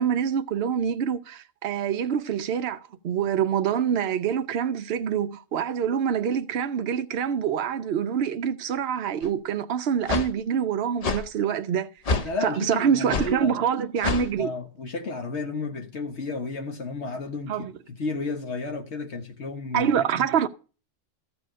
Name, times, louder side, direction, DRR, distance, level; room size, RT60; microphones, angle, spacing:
voice 1, 0.0-11.9 12.4-14.5 17.5-17.7 19.7-20.5, right 8 dB, 55° right, 0.8 m, -26 dB
sound 1, 9.2-9.3 10.1-10.3 11.0-11.2 12.1-12.3 13.1-13.3 14.0-14.3, left 4 dB, 40° left, 0.6 m, -26 dB
voice 2, 12.2-13.6 14.2-20.3, left 3 dB, 55° left, 1.5 m, -33 dB
14.0 x 4.9 x 6.2 m
omnidirectional pair, 1.4 m